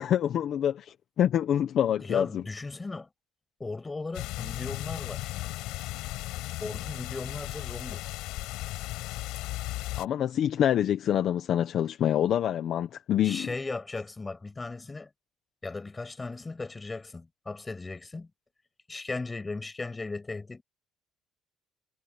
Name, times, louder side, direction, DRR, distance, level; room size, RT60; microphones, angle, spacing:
voice 1, 0.0-2.4 9.9-13.5, left 10 dB, 45° left, 1.0 m, -26 dB
voice 2, 2.0-3.1 3.6-5.3 6.6-8.1 13.2-15.1 15.6-18.3 18.9-20.6, left 3 dB, 15° left, 6.0 m, -37 dB
sound 1, 4.1-10.1, left 19 dB, 80° left, 6.4 m, -36 dB
cardioid pair, 155°, 0 cm